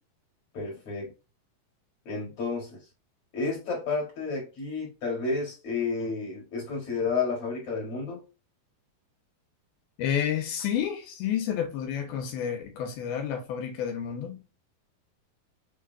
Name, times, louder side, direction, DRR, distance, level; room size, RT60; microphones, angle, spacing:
voice 1, 0.5-1.1 2.1-2.8 3.3-8.2, left 4 dB, 45° left, 2.4 m, -31 dB
voice 2, 10.0-14.4, left 9 dB, 80° left, 2.6 m, -30 dB
6.4 x 3.7 x 2.2 m
omnidirectional pair, 4.5 m